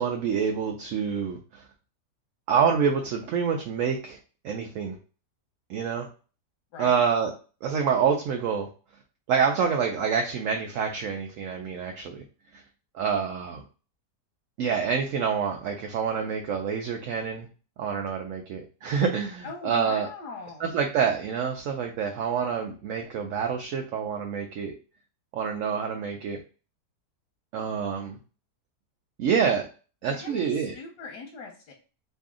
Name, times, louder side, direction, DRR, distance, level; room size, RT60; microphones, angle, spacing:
voice 1, 0.0-1.6 2.5-4.2 4.4-5.0 5.7-6.1 6.8-7.3 7.6-8.7 9.3-12.2 12.5-12.6 12.9-13.6 14.6-17.5 17.8-20.1 20.6-24.7 25.3-26.4 27.5-28.2 29.2-29.7 30.0-30.7, right 6 dB, 70° right, 3 dB, 0.8 m, -27 dB
voice 2, 6.7-7.0 19.4-20.6 30.1-31.7, left 4 dB, 90° left, -1 dB, 1.4 m, -41 dB
3.1 x 2.6 x 3.6 m, 0.35 s
omnidirectional pair, 1.8 m